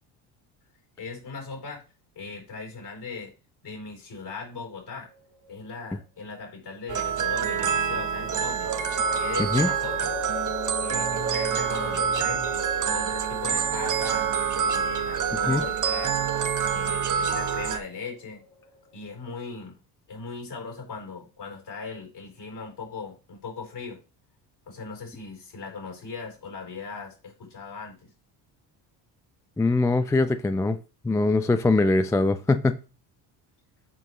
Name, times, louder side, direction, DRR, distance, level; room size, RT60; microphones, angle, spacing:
voice 1, 1.0-1.8 2.1-3.3 3.6-5.1 5.5-8.7 9.2-10.1 10.8-12.6 12.9-14.3 14.7-16.2 16.7-18.4 18.9-19.8 20.1-24.0 24.7-28.1, left 4 dB, 55° left, 4.1 m, -38 dB
sound 1, 5.1-5.9 8.1-19.4, left 4 dB, 75° left, 3.2 m, -41 dB
sound 2, 6.9-17.8, right 7 dB, 40° right, 0.9 m, -26 dB
voice 2, 9.4-9.7 15.5-15.6 29.6-30.8 31.0-32.8, left 2 dB, 5° left, 0.3 m, -22 dB
7.6 x 4.6 x 3.2 m
supercardioid pair, 70°, 49 cm